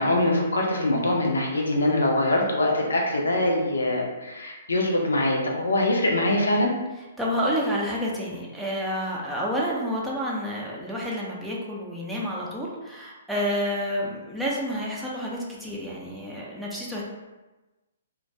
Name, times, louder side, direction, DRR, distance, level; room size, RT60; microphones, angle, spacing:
voice 1, 0.0-6.7, left 1 dB, 85° left, 0 dB, 0.5 m, -23 dB
voice 2, 7.2-17.0, equal, 5° right, -5 dB, 0.5 m, -29 dB
2.2 x 2.1 x 2.6 m, 1.1 s
hypercardioid pair, 135°, 0 cm